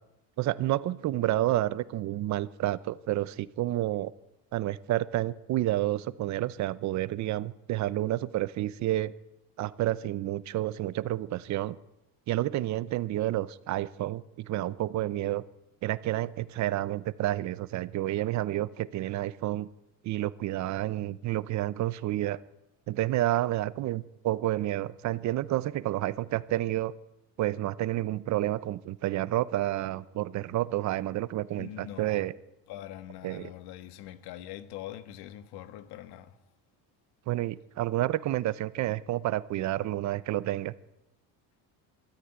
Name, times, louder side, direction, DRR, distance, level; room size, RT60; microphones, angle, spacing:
voice 1, 0.4-4.1 4.5-9.1 9.6-11.8 12.3-15.4 15.8-19.7 20.0-22.4 22.9-26.9 27.4-32.3 33.2-33.5 37.3-40.7, right 15 dB, 50° right, 0.7 m, -30 dB
voice 2, 31.5-32.3 32.7-36.4, left 12 dB, 85° left, 1.6 m, -43 dB
23.5 x 13.5 x 9.2 m
cardioid pair, 175°, 38 cm